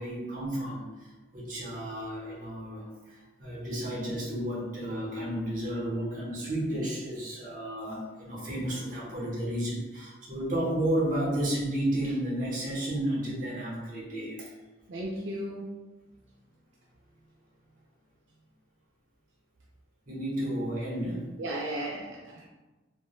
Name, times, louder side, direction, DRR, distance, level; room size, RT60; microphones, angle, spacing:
voice 1, 0.0-14.5 20.1-21.3, right 1 dB, 45° right, -5 dB, 0.8 m, -32 dB
voice 2, 14.9-15.7 21.4-22.5, right 1 dB, 70° right, -3 dB, 0.3 m, -35 dB
3.0 x 2.1 x 2.3 m, 1.2 s
head